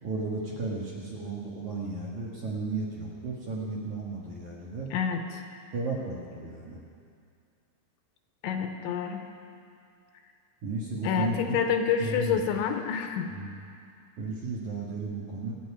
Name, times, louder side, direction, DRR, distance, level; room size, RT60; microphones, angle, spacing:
voice 1, 0.0-4.9 5.7-6.8 10.6-11.6 12.0-12.4 13.3-13.5 14.2-15.5, right 3 dB, 60° right, -3 dB, 2.2 m, -34 dB
voice 2, 4.9-5.4 8.4-9.3 11.0-13.3, left 7 dB, 80° left, 6 dB, 3.1 m, -28 dB
26.0 x 9.5 x 4.9 m, 2.3 s
omnidirectional pair, 5.4 m